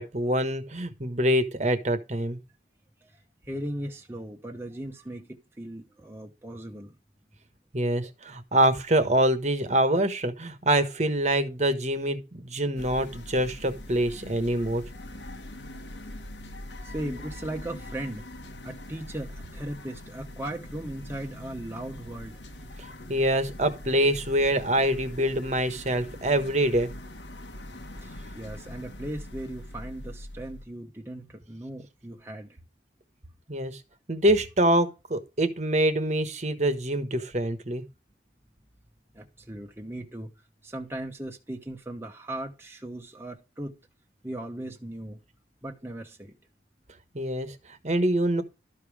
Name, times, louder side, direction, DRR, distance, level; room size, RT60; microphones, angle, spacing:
voice 1, 0.0-2.4 7.7-14.8 23.1-26.9 33.5-33.8 34.1-37.8 47.1-48.4, right 1 dB, 40° right, 1.3 m, -25 dB
voice 2, 3.0-6.9 16.8-18.3 18.6-22.7 28.0-32.6 39.1-40.3 40.6-43.7 44.2-45.2 45.6-46.4, right 1 dB, 15° right, 1.0 m, -38 dB
sound 1, 12.8-30.6, left 1 dB, 75° left, 1.6 m, -42 dB
12.5 x 5.4 x 4.8 m
head